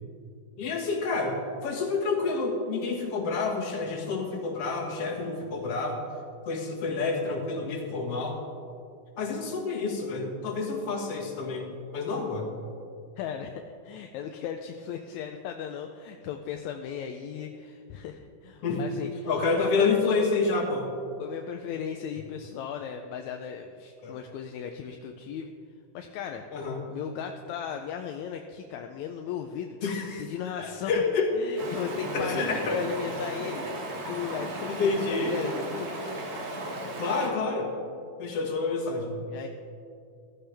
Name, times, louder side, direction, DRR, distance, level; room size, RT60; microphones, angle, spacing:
voice 1, 0.6-1.4 1.6-6.0 6.5-8.4 9.2-12.5 18.6-18.8 19.3-20.9 24.0-24.1 26.5-26.8 29.8-30.2 30.6-31.3 32.1-32.8 34.7-35.4 37.0-37.7 38.2-39.2, left 4 dB, 55° left, -1 dB, 2.6 m, -28 dB
voice 2, 13.2-19.9 21.2-25.5 25.9-26.4 26.9-29.8 30.2-30.9 31.4-35.9 39.3-39.5, left 8 dB, 80° left, 4 dB, 1.9 m, -36 dB
Stream, 31.6-37.3, right 2 dB, 70° right, 3.2 m, -35 dB
15.5 x 13.5 x 3.4 m, 2.4 s
omnidirectional pair, 3.5 m